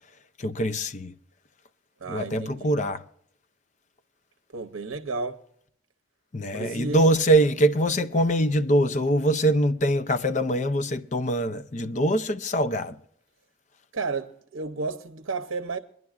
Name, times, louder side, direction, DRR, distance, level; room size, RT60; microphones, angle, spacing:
voice 1, 0.4-1.1 2.1-3.0 6.3-13.0, right 1 dB, 35° left, 0.5 m, -23 dB
voice 2, 2.0-2.7 4.5-5.4 6.5-7.1 13.9-15.8, right 4 dB, 75° right, 0.7 m, -32 dB
23.0 x 11.0 x 2.4 m
head